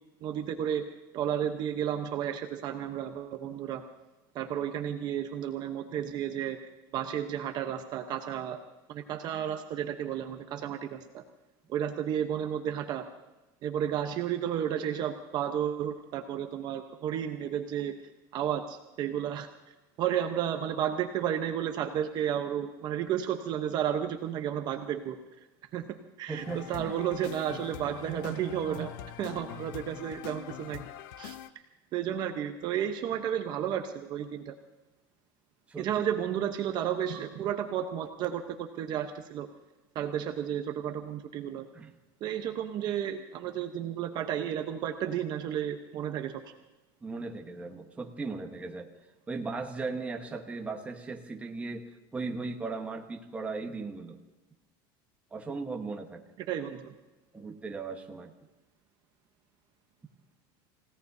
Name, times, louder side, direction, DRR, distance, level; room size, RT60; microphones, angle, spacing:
voice 1, 0.2-0.9 1.1-3.8 4.3-6.6 6.9-8.6 8.9-11.2 11.7-13.1 13.6-18.0 18.3-19.5 20.0-25.2 25.7-28.9 29.2-30.8 31.2-31.4 31.9-34.5 35.8-39.5 39.9-41.6 42.2-46.4 56.5-56.9, right 9 dB, 35° right, 6 dB, 0.9 m, -32 dB
voice 2, 26.3-27.0 35.7-35.9 41.7-41.9 47.0-48.9 49.3-54.2 55.3-56.2 57.3-58.3, right 3 dB, 10° right, 3 dB, 1.2 m, -37 dB
sound 1, 26.4-31.5, left 11 dB, 70° left, 0.8 m, -44 dB
29.5 x 17.0 x 2.7 m, 1.1 s
supercardioid pair, 160°, 12 cm